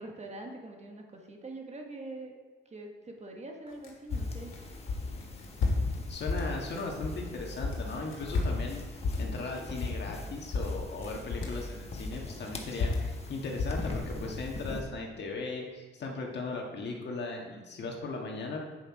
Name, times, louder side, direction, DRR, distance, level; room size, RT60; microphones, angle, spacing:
voice 1, 0.0-2.3 2.6-4.5, right 2 dB, 35° right, 2 dB, 1.5 m, -44 dB
sound 1, 3.7-7.3 7.6-10.2 10.5-11.6 12.0-14.2, left 3 dB, 85° left, 2.0 m, -32 dB
sound 2, 4.1-14.8, left 2 dB, 30° left, 1.3 m, -42 dB
voice 2, 6.1-18.6, left 3 dB, 60° left, 0 dB, 1.6 m, -38 dB
8.3 x 7.2 x 4.8 m, 1.4 s
cardioid pair, 95°, 20 cm